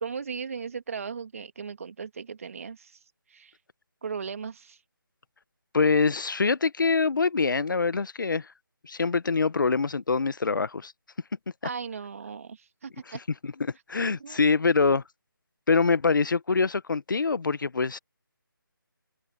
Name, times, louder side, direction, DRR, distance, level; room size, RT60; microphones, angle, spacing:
voice 1, 0.0-3.0 3.3-3.5 4.0-4.8 11.6-13.2 14.1-14.4, right 6 dB, 40° right, 1.8 m, -37 dB
voice 2, 5.7-8.5 8.8-10.9 13.1-13.2 13.4-15.0 15.7-18.0, left 4 dB, 60° left, 1.1 m, -24 dB
open air
figure-of-eight pair, 170°, 12 cm